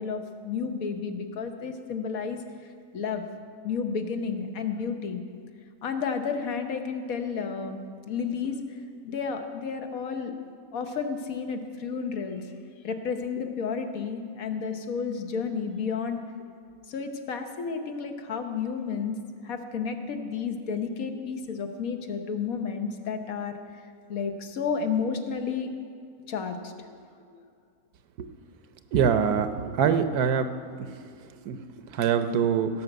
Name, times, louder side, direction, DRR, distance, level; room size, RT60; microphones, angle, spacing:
voice 1, 0.0-2.4 2.9-3.2 3.6-5.2 5.8-8.6 9.0-10.3 10.7-12.4 12.8-16.2 16.9-19.2 19.4-23.6 24.1-25.7 26.2-27.0, left 6 dB, 70° left, 6 dB, 1.3 m, -31 dB
voice 2, 28.9-29.5 29.8-30.5 31.5-31.6 32.0-32.7, right 7 dB, 85° right, 10 dB, 1.3 m, -23 dB
17.0 x 5.7 x 7.8 m, 2.3 s
omnidirectional pair, 1.6 m